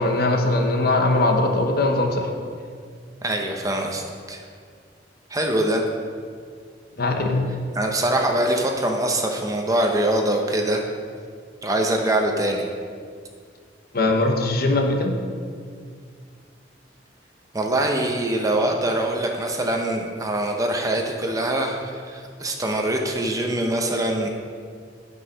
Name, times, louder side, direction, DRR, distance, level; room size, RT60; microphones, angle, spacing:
voice 1, 0.0-2.3 7.0-7.5 13.9-15.2, left 2 dB, 55° left, 3 dB, 1.0 m, -21 dB
voice 2, 3.2-4.4 5.3-5.8 7.7-10.8 11.6-12.6 17.5-24.3, right 1 dB, 20° right, 2 dB, 0.8 m, -23 dB
9.3 x 5.5 x 5.6 m, 2.1 s
head